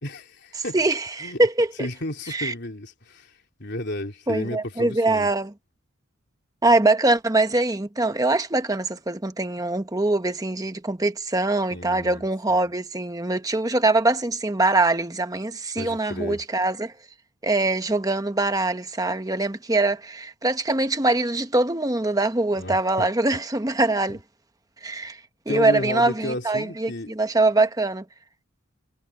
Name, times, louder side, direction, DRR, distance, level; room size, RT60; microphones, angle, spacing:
voice 1, 0.0-0.8 1.2-1.4 1.8-5.3 11.7-12.2 12.5-12.6 15.8-16.4 22.6-23.1 24.1-24.2 25.5-27.1, left 1 dB, 55° left, 3.8 m, -33 dB
voice 2, 0.7-1.9 2.3-2.5 4.3-5.5 6.6-16.9 17.4-24.2 24.8-25.2 25.5-28.0, right 2 dB, 15° right, 1.0 m, -23 dB
head